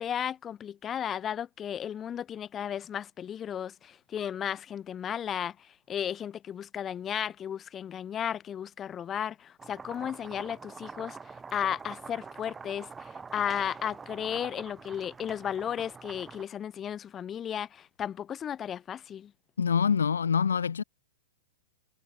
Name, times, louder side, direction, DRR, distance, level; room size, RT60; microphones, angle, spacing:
voice 1, 0.0-11.2 11.5-19.3, left 9 dB, 25° left, 0.7 m, -34 dB
sound 1, 9.6-16.4, right 5 dB, 15° right, 4.4 m, -45 dB
voice 2, 19.6-20.8, left 6 dB, 75° left, 0.5 m, -25 dB
figure-of-eight pair, 105°, 0 cm